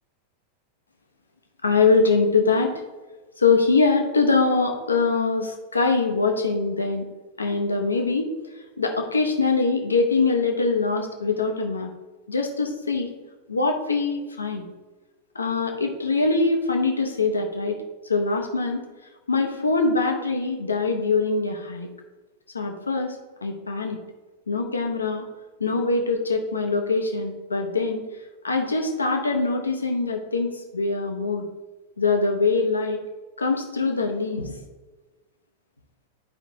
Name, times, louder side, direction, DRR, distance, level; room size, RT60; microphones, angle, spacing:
voice 1, 1.6-2.8 3.4-7.1 7.4-8.3 8.8-11.9 12.3-13.1 13.5-14.7 15.3-18.8 19.3-21.9 22.5-24.0 24.5-25.3 25.6-28.0 28.4-31.4 32.0-33.0 33.4-34.6, left 4 dB, 75° left, 4 dB, 0.9 m, -23 dB
10.5 x 5.0 x 2.8 m, 1.2 s
figure-of-eight pair, 90°, 0 cm